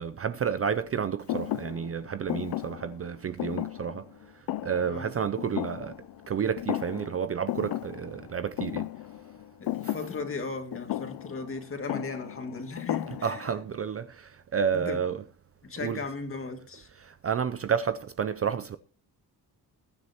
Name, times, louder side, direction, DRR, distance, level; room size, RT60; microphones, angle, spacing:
voice 1, 0.0-4.1 4.6-5.9 6.3-8.9 9.8-9.9 13.1-15.2 15.8-16.0 17.0-18.8, right 7 dB, 35° right, 0.5 m, -30 dB
Thump thud, 1.3-6.3 6.6-7.2 7.5-13.6, left 15 dB, 60° left, 0.5 m, -35 dB
voice 2, 9.6-13.4 14.7-15.0 15.6-16.9, left 3 dB, 30° left, 2.2 m, -37 dB
21.5 x 9.5 x 2.9 m
cardioid pair, 140°, 40 cm